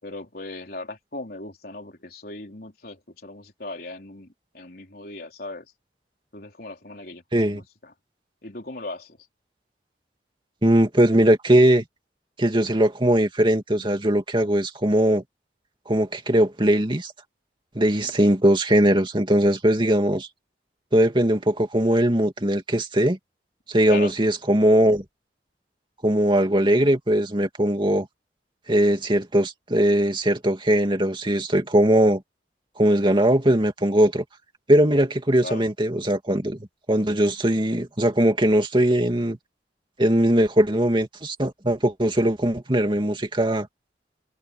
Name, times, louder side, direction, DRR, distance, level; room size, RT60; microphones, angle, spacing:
voice 1, 0.0-5.7 6.3-7.9 8.4-9.3 17.8-18.1 23.9-24.1 35.4-35.7, left 2 dB, 55° left, 4.2 m, -38 dB
voice 2, 10.6-11.8 12.4-15.2 15.9-17.1 17.7-20.3 20.9-23.2 23.7-25.0 26.0-28.1 28.7-32.2 32.8-34.2 34.7-39.4 40.0-43.7, right 1 dB, 30° right, 2.6 m, -20 dB
head